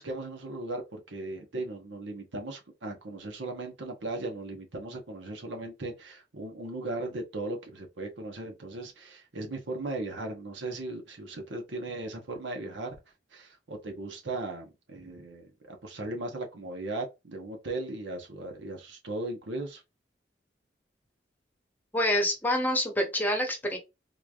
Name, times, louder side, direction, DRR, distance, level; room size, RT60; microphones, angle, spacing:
voice 1, 0.0-12.9 13.3-19.8, right 2 dB, 85° right, 1.0 m, -37 dB
voice 2, 21.9-23.8, left 1 dB, 10° left, 0.9 m, -27 dB
3.8 x 3.2 x 2.3 m
head